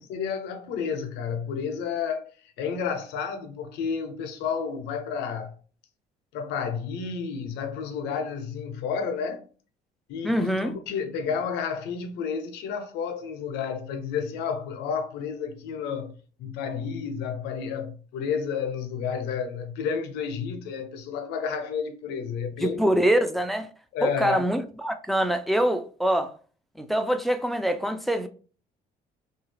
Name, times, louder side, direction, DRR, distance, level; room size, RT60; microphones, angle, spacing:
voice 1, 0.0-2.3 2.6-5.5 6.3-9.4 10.1-22.8 23.9-24.5, left 6 dB, 90° left, 0.6 m, -31 dB
voice 2, 10.2-10.7 22.6-23.7 24.0-26.3 26.8-28.3, right 1 dB, ahead, 0.3 m, -24 dB
2.7 x 2.3 x 3.1 m
cardioid pair, 110°, 17 cm